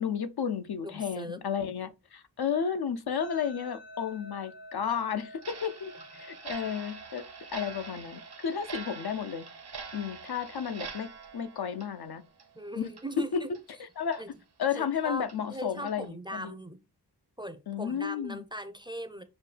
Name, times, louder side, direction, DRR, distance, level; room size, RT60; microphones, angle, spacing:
voice 1, 0.0-7.2 7.5-9.5 9.9-12.2 12.7-12.9 13.3-13.4 14.0-14.2 14.6-16.5 17.7-18.4, left 7 dB, 65° left, 0.6 m, -32 dB
voice 2, 0.8-1.4 12.5-13.5 14.2-14.3 14.8-16.8 17.4-19.2, equal, 10° right, 0.5 m, -39 dB
sound 1, 3.2-12.2, equal, 80° left, 1.5 m, -52 dB
Clock, 5.4-12.6 12.9-13.1 13.5-13.6 14.1-14.2 14.7-14.8 15.3-15.4 15.9-16.1, right 5 dB, 70° right, 1.0 m, -45 dB
6.4 x 2.2 x 3.2 m
wide cardioid pair, 60°, 41 cm